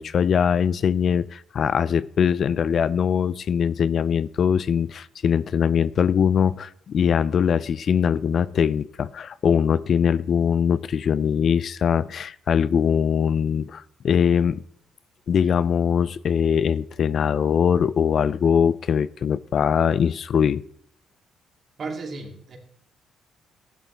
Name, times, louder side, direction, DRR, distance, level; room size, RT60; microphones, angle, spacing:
voice 1, 0.0-14.6 15.3-20.6, left 7 dB, 55° left, 18 dB, 0.4 m, -22 dB
voice 2, 21.8-22.6, right 3 dB, 50° right, 1 dB, 3.0 m, -34 dB
15.0 x 11.0 x 3.5 m, 0.66 s
cardioid pair, 90°, 0 cm